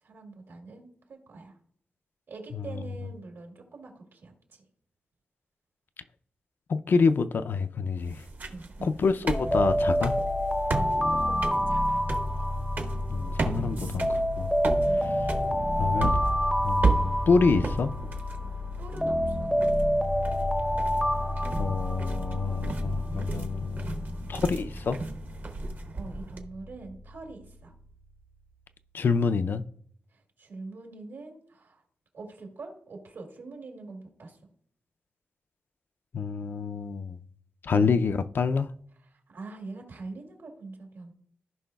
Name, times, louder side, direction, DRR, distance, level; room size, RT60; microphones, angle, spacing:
voice 1, 0.0-1.6 2.3-4.6 8.5-8.9 10.7-12.0 14.8-15.2 18.8-19.5 23.8-24.4 25.9-27.7 30.1-31.8 32.1-34.4 39.1-41.1, right 3 dB, 80° right, 2.2 m, -44 dB
voice 2, 6.7-8.2 8.8-10.1 13.1-14.5 15.8-16.3 16.6-17.9 21.6-24.0 24.3-25.0 28.9-29.6 36.1-37.2 37.6-38.7, left 4 dB, 60° left, 0.4 m, -27 dB
sound 1, 8.0-26.4, right 3 dB, 50° right, 0.8 m, -34 dB
Alarm, 9.3-13.5 14.0-18.5 19.0-22.8, equal, ahead, 0.6 m, -28 dB
sound 2, 9.4-28.4, left 2 dB, 85° left, 2.5 m, -35 dB
15.5 x 5.4 x 2.3 m
wide cardioid pair, 135°, 4 cm